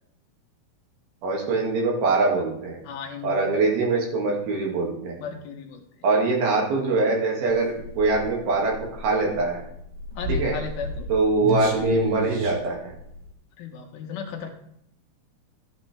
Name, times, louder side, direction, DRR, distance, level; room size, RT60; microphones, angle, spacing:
voice 1, 1.2-2.8 3.2-5.1 6.0-9.6 10.3-10.5 11.1-12.9, right 3 dB, 75° right, -1 dB, 3.8 m, -23 dB
voice 2, 2.8-3.5 5.2-5.8 10.2-11.1 13.6-14.5, left 6 dB, 75° left, 3 dB, 2.9 m, -35 dB
sound 1, 7.5-13.3, equal, 45° right, 2.3 m, -32 dB
12.5 x 8.5 x 3.3 m, 0.73 s
omnidirectional pair, 4.4 m